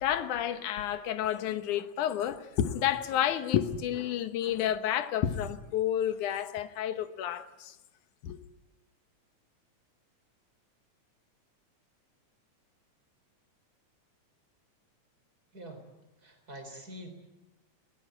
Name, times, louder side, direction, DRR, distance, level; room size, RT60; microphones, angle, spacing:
voice 1, 0.0-7.7 8.2-8.4, left 10 dB, 90° left, 2.6 m, -30 dB
voice 2, 15.5-15.8 16.2-17.1, equal, 30° right, 4.3 m, -45 dB
21.5 x 19.0 x 9.0 m
omnidirectional pair, 3.4 m